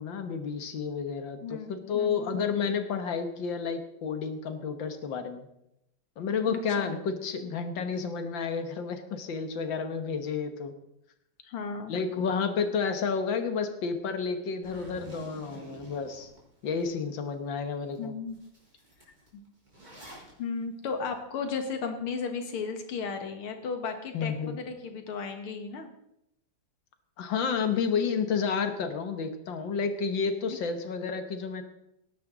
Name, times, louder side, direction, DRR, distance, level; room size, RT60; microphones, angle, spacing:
voice 1, 0.0-5.5 6.2-10.7 11.9-16.3 16.6-18.1 24.1-24.6 27.2-31.6, left 5 dB, 65° left, 8 dB, 1.9 m, -31 dB
voice 2, 1.4-2.5 6.5-6.9 11.5-12.0 18.0-18.4 20.4-25.9, left 5 dB, 85° left, 6 dB, 2.4 m, -35 dB
Zipper (clothing), 14.6-16.9 17.3-17.4 17.9-18.0 18.3-20.3, right 1 dB, 20° right, 4.2 m, -48 dB
18.0 x 11.0 x 3.9 m, 0.80 s
omnidirectional pair, 2.3 m